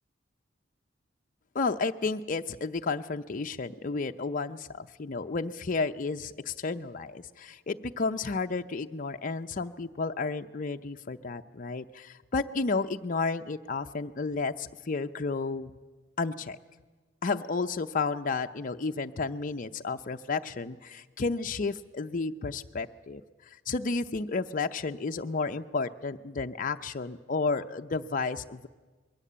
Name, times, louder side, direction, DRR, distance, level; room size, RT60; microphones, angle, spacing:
voice 1, 1.5-15.7 16.2-16.6 17.2-23.2 23.7-28.7, left 4 dB, 45° left, 6 dB, 0.6 m, -32 dB
22.0 x 17.0 x 8.6 m, 1.3 s
head